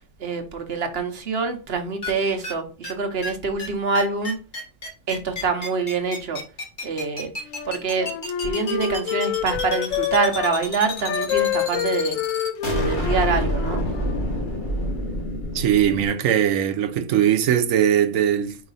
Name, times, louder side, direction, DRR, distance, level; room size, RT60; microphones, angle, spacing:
voice 1, 0.2-4.4 5.1-6.4 6.8-7.3 7.6-12.2 12.6-13.8, right 4 dB, 55° right, 1.1 m, -25 dB
sound 1, 2.0-2.1 2.4-2.5 2.8-2.9 3.2-3.3 3.6-3.7 3.9-16.1, left 1 dB, 40° left, 1.6 m, -28 dB
Wind instrument woodwind instrument, 7.4-10.6 11.0-14.2, left 9 dB, 85° left, 1.0 m, -27 dB
voice 2, 15.5-18.6, right 10 dB, 85° right, 1.1 m, -20 dB
4.8 x 4.8 x 4.1 m
omnidirectional pair, 1.4 m